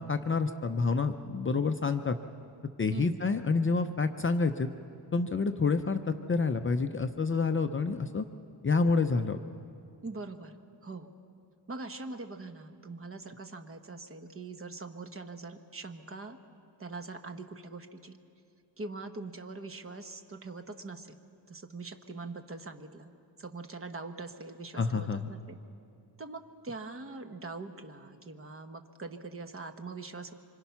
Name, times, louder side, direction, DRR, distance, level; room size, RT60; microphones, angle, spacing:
voice 1, 0.0-2.2 2.8-4.7 5.1-8.2 8.6-9.4 24.8-25.3, left 4 dB, 30° left, 7 dB, 0.6 m, -28 dB
voice 2, 2.9-3.2 10.0-10.5 10.8-11.1 11.7-16.4 16.8-18.2 18.8-21.2 21.5-23.1 23.4-25.6 26.2-30.3, right 3 dB, 30° right, 7 dB, 1.0 m, -42 dB
25.5 x 25.5 x 5.8 m, 2.5 s
wide cardioid pair, 155°, 43 cm